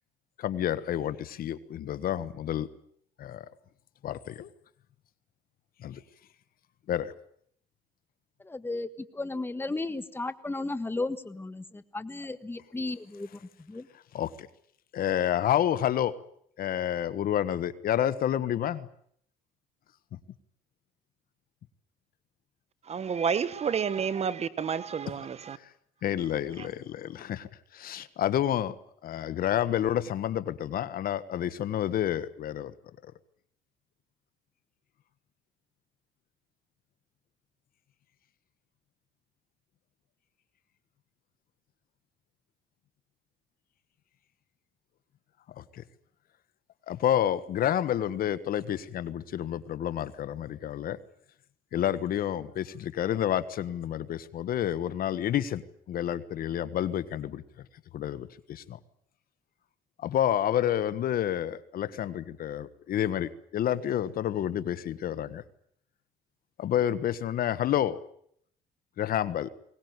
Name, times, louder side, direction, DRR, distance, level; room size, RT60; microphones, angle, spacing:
voice 1, 0.4-2.7 3.2-3.5 4.0-4.5 5.8-6.0 6.9-7.1 14.1-14.5 14.9-16.1 16.6-18.9 25.6-25.7 26.0-28.7 29.0-32.7 45.6-45.8 46.9-51.0 51.7-55.6 55.9-57.6 57.9-58.8 60.0-65.4 66.6-68.0 69.0-69.5, left 11 dB, 60° left, 1.3 m, -29 dB
voice 2, 8.4-13.9, left 2 dB, 15° left, 1.4 m, -35 dB
voice 3, 22.8-25.6 26.6-26.7, right 7 dB, 40° right, 1.2 m, -30 dB
22.5 x 19.0 x 9.5 m
cardioid pair, 110°, 17 cm